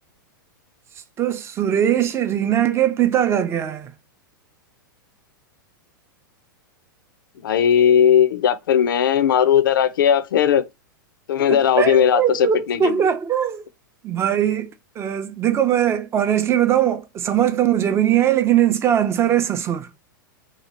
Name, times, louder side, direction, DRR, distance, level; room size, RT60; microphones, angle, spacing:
voice 1, 1.2-3.9 11.5-13.6 14.0-19.9, right 10 dB, 25° right, 0.5 m, -20 dB
voice 2, 7.4-10.6 11.3-13.1, left 8 dB, 70° left, 0.5 m, -17 dB
2.9 x 2.3 x 4.1 m
hypercardioid pair, 110°, 11 cm